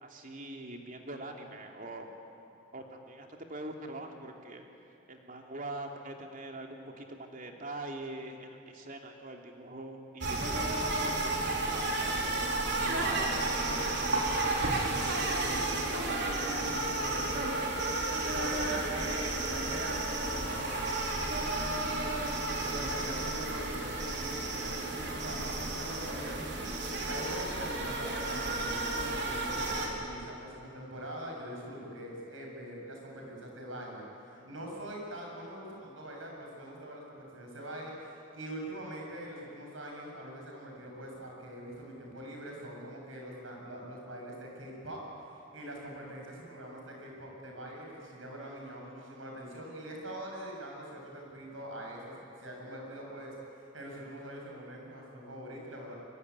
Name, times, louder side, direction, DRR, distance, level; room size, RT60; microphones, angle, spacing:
voice 1, 0.0-2.1 2.7-4.6 5.1-7.1 7.3-10.7 11.2-11.3 11.6-12.3, right 2 dB, 45° right, 2 dB, 3.0 m, -43 dB
sound 1, 10.2-29.9, right 2 dB, 60° right, 4.2 m, -32 dB
voice 2, 12.8-21.9 22.6-56.0, right 1 dB, 90° right, 0 dB, 7.7 m, -43 dB
24.0 x 23.0 x 9.8 m, 2.6 s
head